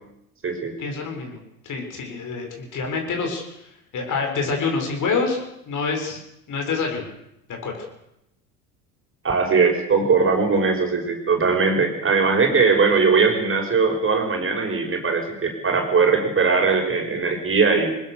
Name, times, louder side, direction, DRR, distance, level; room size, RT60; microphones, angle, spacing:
voice 1, 0.8-1.4 1.6-3.4 3.9-6.2 6.5-7.1 7.6-7.8, left 4 dB, 45° left, 3 dB, 7.0 m, -26 dB
voice 2, 9.2-17.9, right 4 dB, 30° right, 3 dB, 6.1 m, -20 dB
21.5 x 20.0 x 6.9 m, 0.84 s
hypercardioid pair, 70°, 41 cm